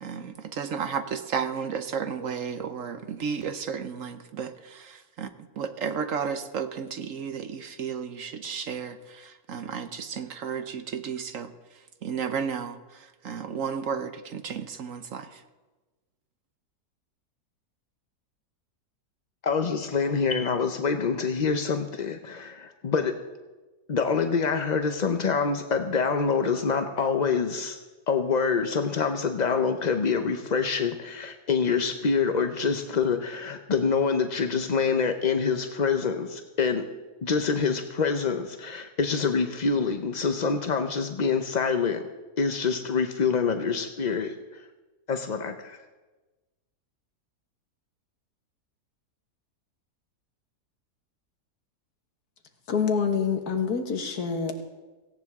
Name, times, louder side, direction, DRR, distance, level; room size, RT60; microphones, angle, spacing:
voice 1, 0.0-5.3 5.6-11.5 12.0-15.3, right 6 dB, 60° right, 10 dB, 1.1 m, -33 dB
voice 2, 19.4-23.2 23.9-27.8 28.1-36.9 37.2-42.1 42.4-44.6 45.1-45.8, left 5 dB, 50° left, 6 dB, 0.5 m, -26 dB
voice 3, 52.7-54.6, left 6 dB, 70° left, 5 dB, 1.9 m, -26 dB
17.5 x 16.5 x 3.6 m, 1.2 s
omnidirectional pair, 1.7 m